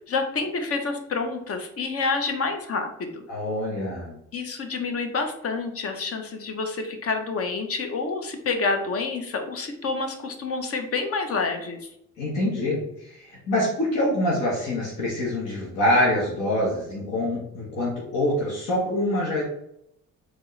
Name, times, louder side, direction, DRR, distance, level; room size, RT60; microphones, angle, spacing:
voice 1, 0.1-3.2 4.3-11.8, left 4 dB, 50° left, 6 dB, 0.8 m, -28 dB
voice 2, 3.3-4.2 12.2-19.4, left 1 dB, 75° left, -5 dB, 1.3 m, -25 dB
4.4 x 3.1 x 3.2 m, 0.76 s
cardioid pair, 90°, 30 cm